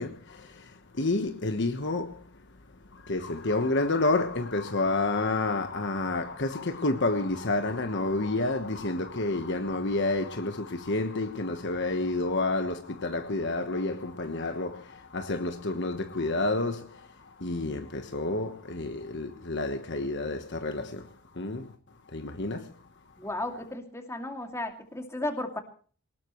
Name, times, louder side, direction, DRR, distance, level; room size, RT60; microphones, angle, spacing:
voice 1, 0.0-23.1, left 2 dB, 50° left, 1.3 m, -30 dB
voice 2, 23.2-25.6, left 1 dB, 10° left, 2.5 m, -34 dB
22.5 x 19.5 x 3.2 m
head